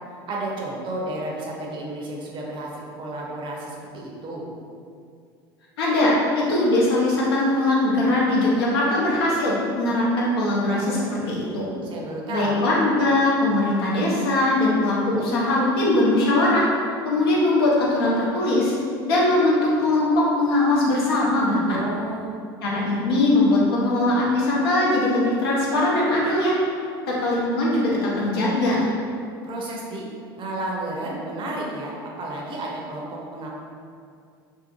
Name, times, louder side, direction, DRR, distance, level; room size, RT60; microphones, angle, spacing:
voice 1, 0.3-4.4 11.8-12.6 21.7-22.4 29.4-30.0 30.4-33.5, right 1 dB, 40° right, -2 dB, 0.6 m, -32 dB
voice 2, 5.8-11.7 12.3-16.7 17.0-18.7 19.0-21.8 22.6-26.6 27.1-28.9, left 2 dB, 80° left, -5 dB, 0.7 m, -21 dB
2.6 x 2.1 x 2.9 m, 2.3 s
hypercardioid pair, 75°, 12 cm